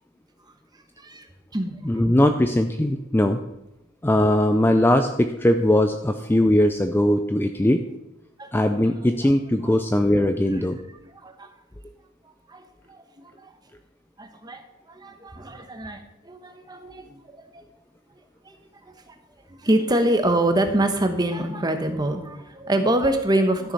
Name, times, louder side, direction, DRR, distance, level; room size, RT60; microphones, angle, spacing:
voice 1, 1.8-3.4 4.0-7.8 8.5-10.8, left 1 dB, 10° left, 6 dB, 0.4 m, -20 dB
voice 2, 8.8-9.3 9.6-9.7 11.1-11.5 12.5-13.5 14.2-14.6 14.9-17.6 18.4-18.5 19.1-19.2 19.5-23.7, right 1 dB, 20° right, 7 dB, 1.1 m, -25 dB
13.0 x 7.0 x 5.5 m, 0.88 s
head